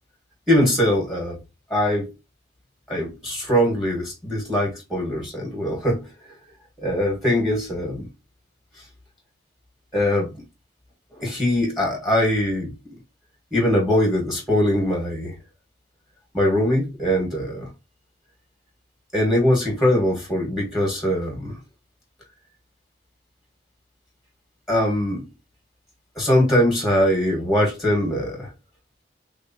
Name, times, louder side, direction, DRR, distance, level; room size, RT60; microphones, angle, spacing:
voice 1, 0.5-1.4 1.7-2.1 2.9-6.1 6.8-8.1 9.9-10.4 11.2-12.7 13.5-15.4 16.3-17.7 19.1-21.6 24.7-25.3 26.2-28.5, left 1 dB, ahead, 1.6 m, -22 dB
3.6 x 3.3 x 2.8 m
head